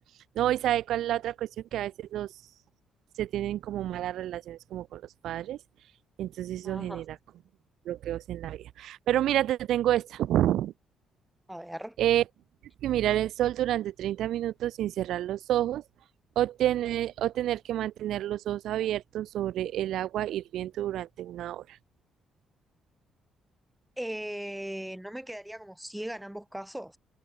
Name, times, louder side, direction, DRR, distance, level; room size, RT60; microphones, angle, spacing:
voice 1, 0.3-2.3 3.2-5.6 6.2-7.2 7.8-10.7 12.0-12.2 12.8-15.8 16.3-21.6, right 12 dB, 80° right, 6.5 m, -29 dB
voice 2, 6.6-7.0 11.5-12.0 24.0-27.0, right 1 dB, 5° right, 6.7 m, -38 dB
cardioid pair, 90°, 0 cm